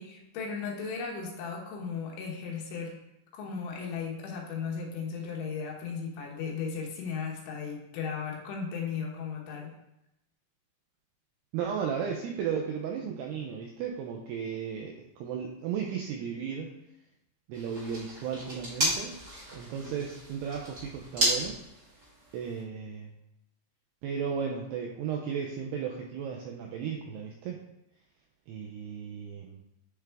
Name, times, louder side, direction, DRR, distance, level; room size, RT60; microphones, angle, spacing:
voice 1, 0.0-3.0 3.3-9.7, left 5 dB, 85° left, -1 dB, 3.6 m, -36 dB
voice 2, 11.5-16.7 17.5-19.1 19.5-21.5 22.3-23.1 24.0-27.6 28.5-29.6, right 7 dB, 85° right, 1 dB, 2.3 m, -35 dB
sound 1, 17.5-22.6, right 1 dB, 35° right, 1.6 m, -33 dB
10.0 x 3.5 x 3.5 m, 0.87 s
omnidirectional pair, 5.3 m